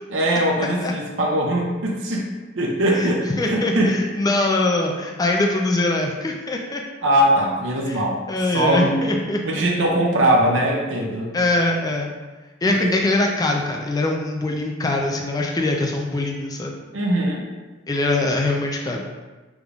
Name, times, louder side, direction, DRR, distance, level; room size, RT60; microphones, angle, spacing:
voice 1, 0.1-4.0 7.0-8.2 8.5-9.2 9.4-11.4 12.6-13.0 16.9-17.5, right 1 dB, 70° right, -1 dB, 0.6 m, -21 dB
voice 2, 3.4-6.8 7.9-8.0 8.3-9.6 11.3-12.1 12.6-16.8 17.9-19.0, left 2 dB, 20° left, 1 dB, 0.4 m, -23 dB
5.2 x 3.5 x 2.3 m, 1.2 s
head